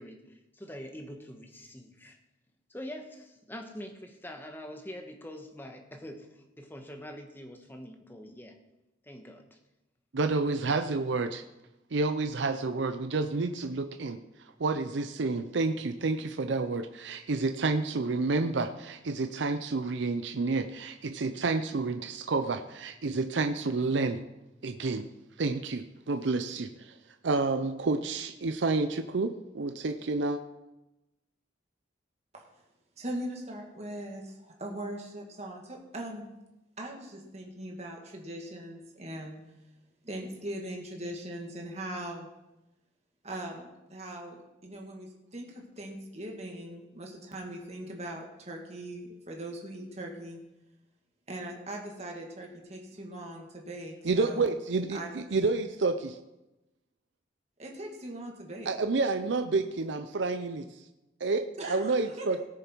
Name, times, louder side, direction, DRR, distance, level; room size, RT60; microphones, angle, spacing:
voice 1, 0.0-2.2 2.7-8.6 9.0-9.6, equal, 10° left, 3 dB, 1.2 m, -44 dB
voice 2, 10.1-11.4 11.9-14.2 14.6-24.2 24.6-25.1 25.4-27.0 27.2-30.4 54.0-56.2 58.7-60.7 61.2-62.4, right 3 dB, 75° right, 8 dB, 0.6 m, -29 dB
voice 3, 33.0-36.3 36.8-39.4 40.0-42.3 43.2-50.4 51.3-54.5 54.9-55.2 57.6-58.7 61.6-62.3, right 1 dB, 35° right, 0 dB, 2.0 m, -40 dB
18.0 x 6.8 x 4.6 m, 0.98 s
head